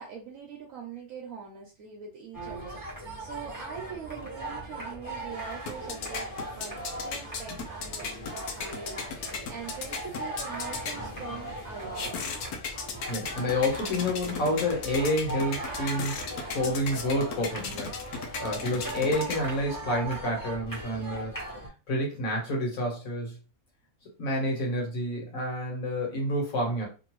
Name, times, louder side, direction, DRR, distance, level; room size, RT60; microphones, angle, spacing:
voice 1, 0.0-6.8 7.0-12.1, right 6 dB, 70° right, 0 dB, 1.0 m, -43 dB
sound 1, 2.3-21.7, right 2 dB, 15° left, 1.1 m, -39 dB
sound 2, 5.3-19.8, left 5 dB, 85° left, 1.1 m, -38 dB
voice 2, 13.1-18.0 18.4-21.3 21.9-23.4 24.2-26.9, left 1 dB, 65° left, -1 dB, 1.6 m, -29 dB
3.0 x 2.6 x 3.0 m, 0.33 s
omnidirectional pair, 1.6 m